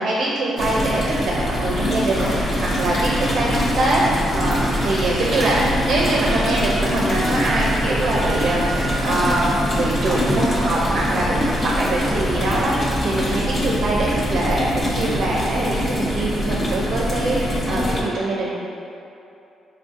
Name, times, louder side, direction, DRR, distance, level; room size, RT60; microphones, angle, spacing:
voice 1, 0.0-4.0 4.3-18.5, right 2 dB, 60° right, -4 dB, 0.4 m, -23 dB
sound 1, 0.6-18.0, equal, 40° left, 0.5 m, -24 dB
sound 2, 2.1-12.8, right 1 dB, 20° right, 0.7 m, -31 dB
Wind instrument woodwind instrument, 6.3-8.9, right 3 dB, 20° left, 1.1 m, -36 dB
4.2 x 2.5 x 2.4 m, 2.7 s
cardioid pair, 90°, 0 cm